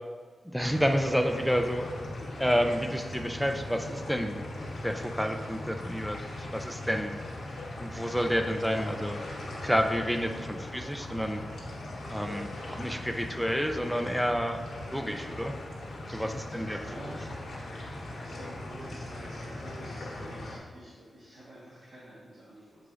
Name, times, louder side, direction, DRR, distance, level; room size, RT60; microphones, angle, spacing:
voice 1, 0.5-1.9 2.4-4.4 4.8-7.1 7.8-9.2 9.6-11.4 12.1-14.6 14.9-15.5 16.1-16.9, equal, ahead, 5 dB, 0.4 m, -29 dB
sound 1, 0.6-20.6, left 1 dB, 80° left, 1.4 m, -40 dB
voice 2, 15.0-15.4 16.0-17.4 18.1-22.9, right 1 dB, 40° right, -9 dB, 1.2 m, -48 dB
7.8 x 4.9 x 2.5 m, 1.5 s
wide cardioid pair, 175°, 0 cm